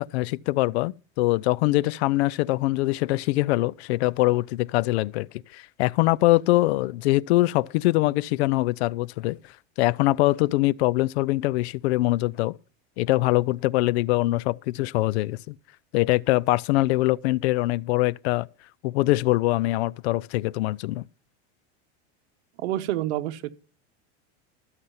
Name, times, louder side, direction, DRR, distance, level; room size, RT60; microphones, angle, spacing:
voice 1, 0.0-5.3 5.5-9.4 9.8-12.6 13.0-15.6 15.9-18.5 18.8-21.0, left 18 dB, 70° left, 0.5 m, -23 dB
voice 2, 22.6-23.5, right 14 dB, 75° right, 1.1 m, -28 dB
13.0 x 8.1 x 5.5 m
supercardioid pair, 160°, 34 cm